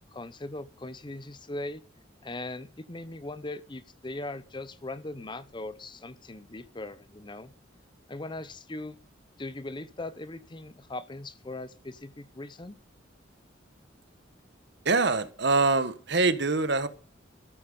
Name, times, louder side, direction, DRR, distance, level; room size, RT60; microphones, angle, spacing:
voice 1, 0.1-1.8 2.2-7.5 8.1-9.0 9.4-12.8, left 2 dB, 25° left, 0.7 m, -39 dB
voice 2, 14.8-16.9, right 3 dB, 60° right, 1.4 m, -24 dB
14.0 x 13.5 x 5.5 m
head